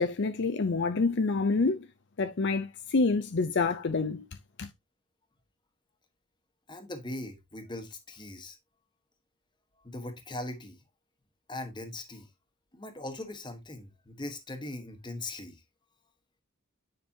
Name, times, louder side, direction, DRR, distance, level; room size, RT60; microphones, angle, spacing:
voice 1, 0.0-1.9 2.2-4.3 4.6-4.7, left 3 dB, 55° left, 0.5 m, -27 dB
voice 2, 6.7-8.6 9.8-10.8 11.5-12.3 12.7-15.6, left 1 dB, 20° left, 1.2 m, -40 dB
9.6 x 5.2 x 2.8 m
head